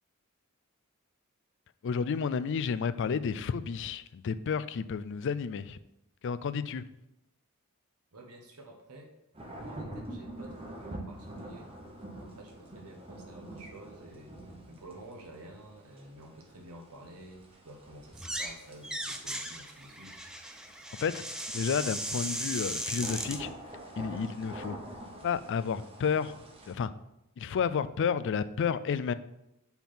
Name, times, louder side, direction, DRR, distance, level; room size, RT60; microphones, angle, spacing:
voice 1, 1.8-5.8 6.2-6.8 21.0-21.2 21.5-23.5 24.0-24.8 25.2-26.3 26.7-26.9 27.4-29.1, left 6 dB, 55° left, 15 dB, 0.4 m, -31 dB
voice 2, 8.1-9.1 9.5-11.7 12.2-20.2, right 1 dB, 90° right, 1 dB, 1.2 m, -50 dB
sound 1, 9.3-26.7, right 1 dB, 25° right, 1.1 m, -46 dB
sound 2, 18.1-18.6 18.8-23.4, right 1 dB, 5° right, 0.5 m, -37 dB
5.8 x 4.4 x 5.7 m, 0.87 s
head